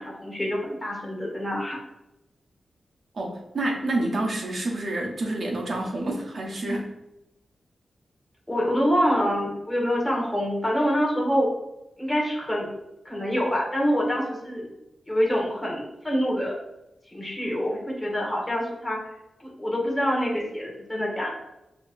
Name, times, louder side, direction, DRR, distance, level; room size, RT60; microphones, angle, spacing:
voice 1, 0.0-1.8 8.5-11.5 12.0-12.7 13.0-14.7 15.1-16.6 17.1-19.0 19.4-21.3, equal, 10° left, -3 dB, 1.4 m, -26 dB
voice 2, 3.1-6.9, right 2 dB, 50° right, 0 dB, 1.0 m, -28 dB
6.9 x 3.0 x 2.5 m, 0.90 s
wide cardioid pair, 150°, 0 cm